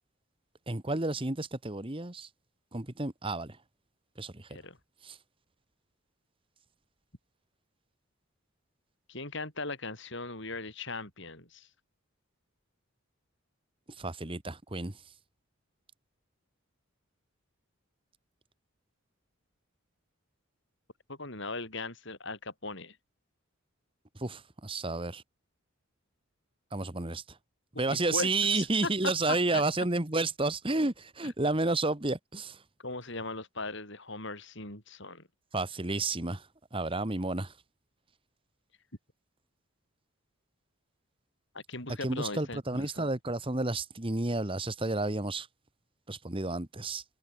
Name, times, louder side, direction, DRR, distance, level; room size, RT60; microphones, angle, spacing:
voice 1, 0.7-2.3 2.7-3.6 4.2-4.5 5.0-5.2 14.0-15.0 24.1-25.2 26.7-27.4 27.8-32.6 35.5-37.5 42.0-45.5 46.1-47.0, right 2 dB, 25° right, 1.4 m, -31 dB
voice 2, 9.1-11.7 21.1-23.0 27.9-28.6 29.5-29.6 32.8-35.2 41.5-42.6 43.0-43.1, left 3 dB, 55° left, 7.9 m, -39 dB
head